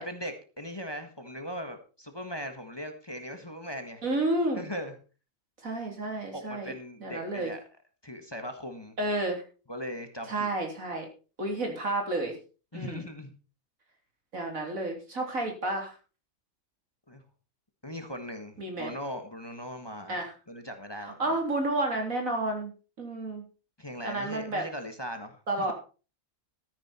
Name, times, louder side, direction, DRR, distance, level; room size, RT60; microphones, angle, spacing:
voice 1, 0.0-4.0 4.5-4.9 6.3-7.6 8.0-9.0 9.7-10.5 12.7-13.3 17.1-17.2 17.8-21.2 23.8-25.7, equal, 20° left, 6 dB, 1.5 m, -39 dB
voice 2, 4.0-4.7 5.6-6.7 7.0-7.5 9.0-9.4 10.3-11.1 11.4-12.3 12.7-13.0 14.3-16.0 18.6-18.9 20.1-20.3 21.0-22.7 23.0-23.4 24.0-24.6 25.5-25.7, right 2 dB, 80° right, 2 dB, 3.9 m, -30 dB
13.5 x 10.0 x 4.4 m, 0.35 s
omnidirectional pair, 1.4 m